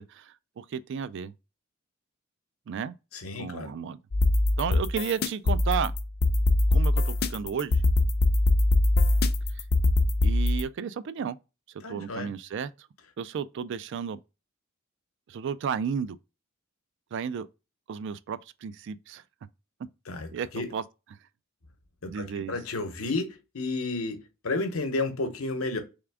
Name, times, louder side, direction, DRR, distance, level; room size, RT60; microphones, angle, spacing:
voice 1, 0.0-1.3 2.7-3.0 3.4-4.0 4.6-5.9 6.7-7.8 10.2-11.4 11.9-12.7 13.2-14.2 15.3-16.2 17.1-17.5 17.9-19.2 20.3-20.8 22.0-22.5, right 7 dB, 60° right, 0.3 m, -33 dB
voice 2, 3.1-3.7 11.8-12.3 20.1-20.3 20.5-20.7 22.0-25.8, left 3 dB, 90° left, 0.9 m, -32 dB
sound 1, 4.1-10.6, left 2 dB, 50° left, 0.5 m, -23 dB
3.5 x 3.4 x 3.4 m
head